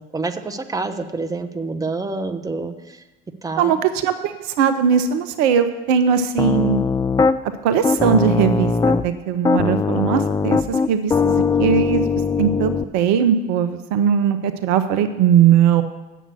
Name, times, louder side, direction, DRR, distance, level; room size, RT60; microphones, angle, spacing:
voice 1, 0.0-3.0 3.4-3.7, right 3 dB, 10° right, 6 dB, 0.9 m, -27 dB
voice 2, 3.6-6.8 7.4-12.1 12.4-15.8, right 8 dB, 55° right, 10 dB, 0.7 m, -19 dB
Piano, 6.4-7.4 7.8-9.1 9.5-12.8, left 5 dB, 10° left, 0.4 m, -20 dB
8.1 x 7.2 x 8.5 m, 1.1 s
figure-of-eight pair, 55°, 34 cm